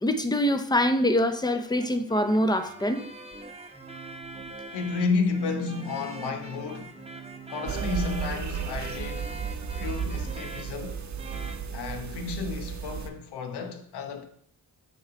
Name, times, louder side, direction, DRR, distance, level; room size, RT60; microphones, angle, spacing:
voice 1, 0.0-3.0, left 1 dB, 10° left, 0.7 m, -24 dB
sound 1, 1.8-11.7, right 2 dB, 15° right, 0.8 m, -42 dB
voice 2, 4.7-7.0 7.5-9.4 9.8-11.0 11.7-14.2, left 4 dB, 90° left, 0.9 m, -31 dB
sound 2, 7.7-13.1, right 7 dB, 45° right, 0.8 m, -34 dB
7.1 x 3.3 x 4.8 m
cardioid pair, 65°, 39 cm